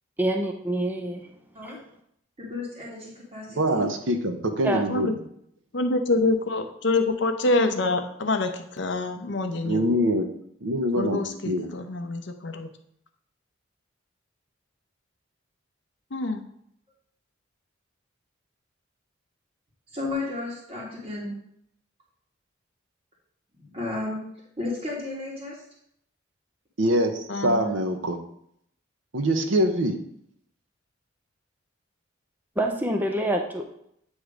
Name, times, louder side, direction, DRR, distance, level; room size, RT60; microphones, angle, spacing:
voice 1, 0.2-1.3 1.6-1.7 4.6-4.8 32.6-33.7, right 1 dB, 10° right, 3 dB, 0.5 m, -26 dB
voice 2, 2.4-3.9 19.9-21.3 23.7-24.2 24.6-25.6, left 2 dB, 30° right, -5 dB, 1.6 m, -33 dB
voice 3, 3.6-5.1 9.6-10.3 10.6-11.7 26.8-28.2 29.1-30.0, equal, 70° right, 6 dB, 0.8 m, -24 dB
voice 4, 5.7-9.9 11.0-12.7 16.1-16.4 27.3-27.8, left 2 dB, 60° left, 6 dB, 0.7 m, -26 dB
8.6 x 3.2 x 4.9 m, 0.72 s
head